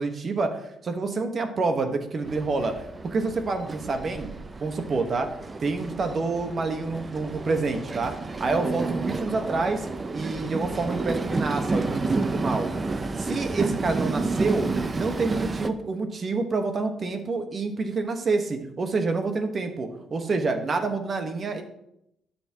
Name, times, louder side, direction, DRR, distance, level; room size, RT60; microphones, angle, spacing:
voice 1, 0.0-4.3 4.6-5.3 5.6-9.9 10.1-12.7 13.3-14.7 15.0-21.6, right 3 dB, 45° right, 6 dB, 1.3 m, -28 dB
Train, 2.2-15.7, right 3 dB, 30° right, 0.6 m, -30 dB
11.5 x 7.2 x 3.0 m, 0.80 s
cardioid pair, 90°, 0 cm